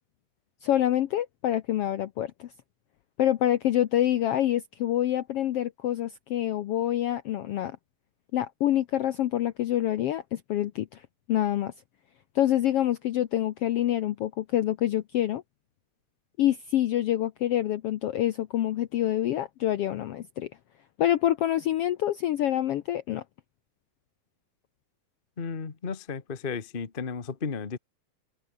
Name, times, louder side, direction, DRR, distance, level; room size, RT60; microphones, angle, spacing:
voice 1, 0.6-2.5 3.2-7.8 8.3-11.7 12.3-15.4 16.4-20.5 21.0-23.2, left 12 dB, 75° left, 1.3 m, -26 dB
voice 2, 25.4-27.8, left 5 dB, 60° left, 0.5 m, -34 dB
omnidirectional pair, 3.7 m